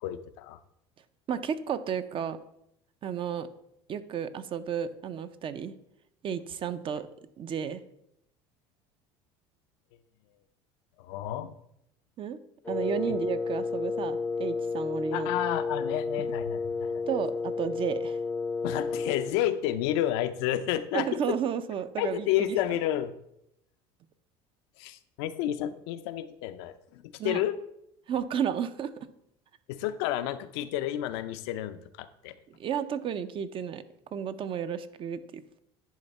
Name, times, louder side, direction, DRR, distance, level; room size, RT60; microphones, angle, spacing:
voice 1, 0.0-0.6 11.0-11.5 13.1-13.2 15.1-17.1 18.6-21.4 22.0-23.1 24.8-27.6 29.7-32.4, left 12 dB, 75° left, 10 dB, 0.5 m, -31 dB
voice 2, 1.3-2.4 3.0-3.5 3.9-5.7 6.2-7.1 7.4-7.8 12.2-12.4 12.7-15.3 17.1-18.2 20.9-22.8 27.2-27.4 28.1-29.1 32.5-33.8 34.1-35.6, right 8 dB, 40° right, 12 dB, 0.5 m, -32 dB
Wind instrument woodwind instrument, 12.6-19.4, left 4 dB, 10° left, 0.4 m, -31 dB
10.0 x 3.5 x 4.1 m, 0.78 s
supercardioid pair, 95°, 14 cm